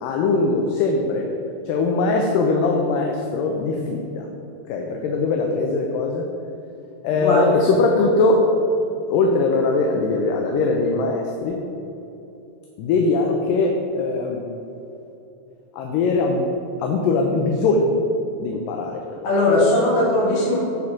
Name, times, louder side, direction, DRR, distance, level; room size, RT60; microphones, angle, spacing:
voice 1, 0.0-1.3 1.7-4.3 4.7-6.3 7.0-8.5 8.9-11.6 12.8-14.5 15.7-16.5 16.8-18.0 18.4-19.2, left 3 dB, 80° left, 1 dB, 2.2 m, -21 dB
voice 2, 7.1-7.5 19.2-20.7, left 2 dB, 60° left, -5 dB, 3.2 m, -19 dB
9.5 x 3.7 x 6.0 m, 2.9 s
omnidirectional pair, 4.1 m